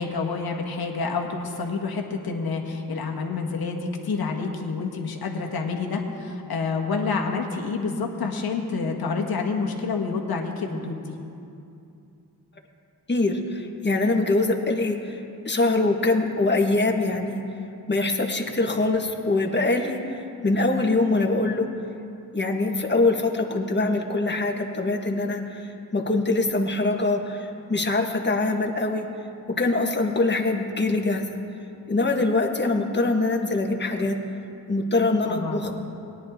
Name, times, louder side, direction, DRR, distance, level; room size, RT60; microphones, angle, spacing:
voice 1, 0.0-11.2 35.3-35.6, left 4 dB, 70° left, 1 dB, 1.6 m, -28 dB
voice 2, 13.1-15.2 15.4-17.4 17.9-21.7 22.3-29.1 29.5-31.3 31.9-34.2 34.7-35.7, left 2 dB, 30° left, 3 dB, 1.6 m, -23 dB
18.0 x 10.5 x 3.7 m, 2.6 s
cardioid pair, 50°, 38 cm